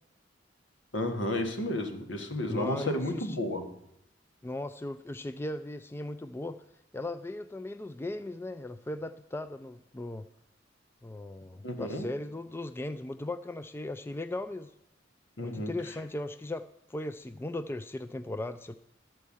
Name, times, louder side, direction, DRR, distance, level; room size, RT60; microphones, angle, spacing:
voice 1, 0.9-3.7 11.6-12.1 15.4-15.7, left 1 dB, 75° left, 5 dB, 1.5 m, -32 dB
voice 2, 2.5-3.4 4.4-6.6 6.9-10.3 11.0-14.7 15.4-18.7, left 2 dB, 15° left, 11 dB, 0.3 m, -37 dB
13.0 x 4.6 x 8.4 m, 0.79 s
head